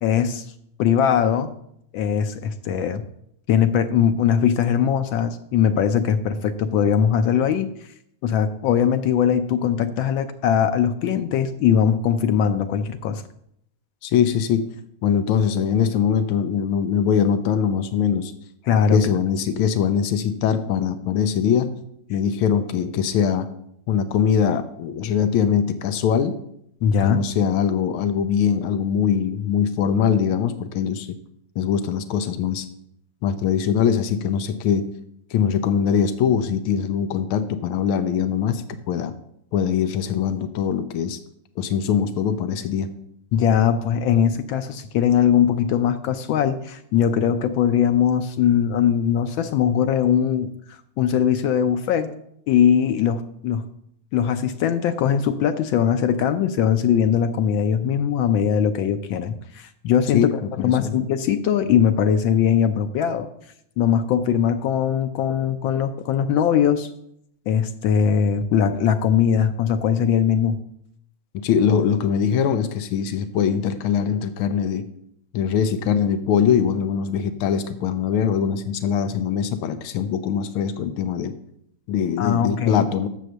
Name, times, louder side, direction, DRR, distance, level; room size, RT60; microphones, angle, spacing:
voice 1, 0.0-0.4 0.8-1.5 1.9-3.0 3.5-7.7 8.2-13.2 18.7-19.1 26.8-27.2 43.3-52.1 52.5-53.7 54.1-63.3 63.8-66.9 67.5-70.6 82.2-82.8, left 8 dB, 75° left, 8 dB, 1.3 m, -20 dB
voice 2, 14.0-14.7 15.0-18.3 18.9-21.8 22.1-23.5 23.9-26.4 27.0-31.2 31.6-32.7 33.2-34.9 35.3-39.1 39.5-41.2 41.6-42.9 60.1-61.0 71.3-74.8 75.3-81.3 81.9-83.1, left 7 dB, 90° left, 10 dB, 1.5 m, -22 dB
6.9 x 6.3 x 6.5 m, 0.72 s
omnidirectional pair, 2.3 m